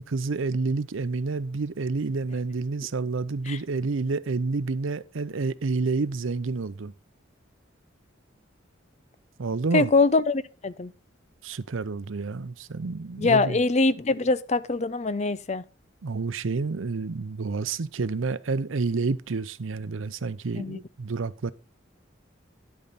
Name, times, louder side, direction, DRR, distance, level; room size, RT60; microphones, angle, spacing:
voice 1, 0.0-6.9 9.4-9.9 11.4-13.6 16.0-21.5, right 4 dB, 85° right, 0.6 m, -29 dB
voice 2, 9.7-10.9 13.2-15.6 20.6-20.8, left 3 dB, 35° left, 0.5 m, -23 dB
10.5 x 8.7 x 4.1 m
head